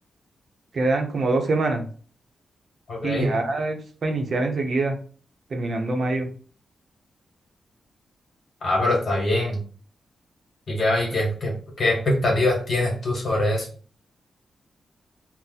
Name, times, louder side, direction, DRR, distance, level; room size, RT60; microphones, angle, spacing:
voice 1, 0.7-1.8 3.0-5.0 5.5-6.3, right 2 dB, 55° right, 3 dB, 0.6 m, -24 dB
voice 2, 2.9-3.3 8.6-9.6 10.7-13.7, left 1 dB, 55° left, -1 dB, 1.3 m, -23 dB
2.7 x 2.1 x 3.9 m, 0.42 s
wide cardioid pair, 115°, 0 cm